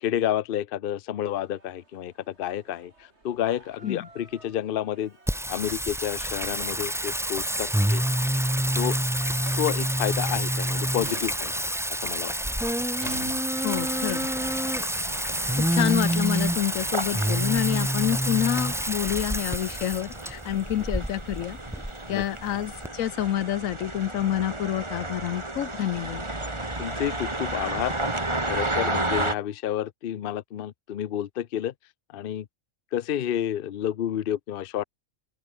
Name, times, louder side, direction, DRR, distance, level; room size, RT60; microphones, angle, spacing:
voice 1, 0.0-2.9 3.2-5.1 5.5-8.0 8.8-9.0 9.6-11.5 11.9-12.4 22.1-22.2 26.8-28.0 28.4-31.7 32.1-32.5 32.9-34.8, left 11 dB, 50° left, 0.8 m, -30 dB
sound 1, 1.3-18.3, right 2 dB, 55° right, 4.2 m, -49 dB
Singing, 5.3-22.9, equal, 5° right, 0.4 m, -27 dB
voice 2, 13.6-14.3 15.6-21.6 22.1-26.2, left 11 dB, 80° left, 1.1 m, -28 dB
sound 2, 13.7-29.4, right 2 dB, 20° right, 2.5 m, -33 dB
open air
omnidirectional pair, 1.4 m